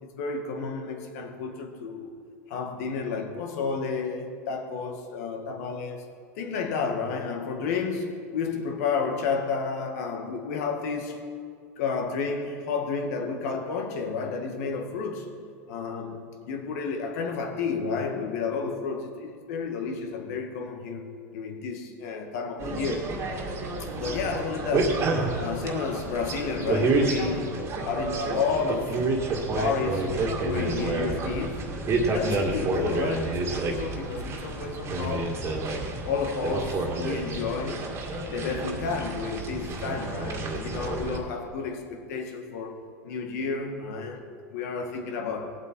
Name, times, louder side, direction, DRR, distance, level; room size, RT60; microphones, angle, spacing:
voice 1, 0.0-2.2 2.5-6.1 6.4-11.2 11.8-15.3 15.7-23.1 23.8-25.1 25.3-29.0 29.6-30.2 30.4-31.7 32.0-35.4 36.1-37.9 38.3-45.5, left 5 dB, 70° left, 4 dB, 2.0 m, -31 dB
sound 1, 22.6-41.2, right 2 dB, 30° right, 2.0 m, -29 dB
19.5 x 7.7 x 4.6 m, 2.2 s
supercardioid pair, 120°, 9 cm